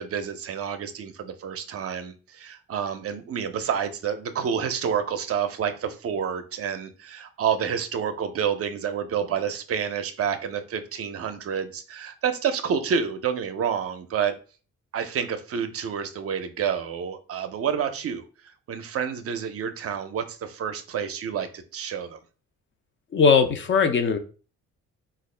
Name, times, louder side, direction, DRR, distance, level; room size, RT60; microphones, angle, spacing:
voice 1, 0.0-14.4 14.9-22.2, right 7 dB, 50° right, 9 dB, 0.5 m, -29 dB
voice 2, 23.1-24.2, left 5 dB, 40° left, 8 dB, 0.4 m, -19 dB
3.5 x 2.4 x 3.2 m, 0.37 s
cardioid pair, 90°, 30 cm